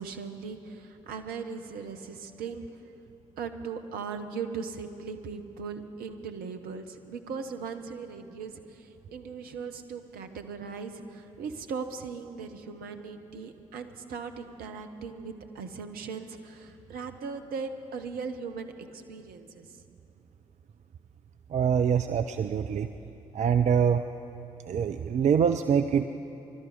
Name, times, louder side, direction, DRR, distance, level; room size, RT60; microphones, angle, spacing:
voice 1, 0.0-2.9 3.4-19.7, right 5 dB, 60° right, 6 dB, 1.1 m, -39 dB
voice 2, 21.5-22.9 23.3-24.0 24.7-26.1, right 7 dB, 45° right, 9 dB, 0.6 m, -24 dB
22.0 x 12.5 x 5.1 m, 2.9 s
figure-of-eight pair, 40°, 17 cm